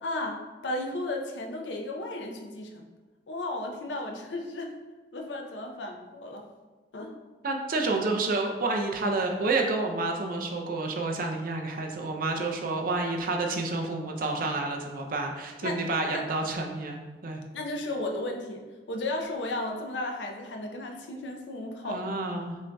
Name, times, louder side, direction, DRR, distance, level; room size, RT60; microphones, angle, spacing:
voice 1, 0.0-2.8 3.3-4.8 5.1-6.4 6.9-7.1 15.6-15.8 16.1-16.3 17.5-22.1, left 2 dB, 85° left, 2 dB, 0.6 m, -34 dB
voice 2, 7.4-17.4 21.8-22.6, right 3 dB, 55° right, 2 dB, 0.5 m, -29 dB
6.1 x 2.6 x 2.2 m, 1.3 s
head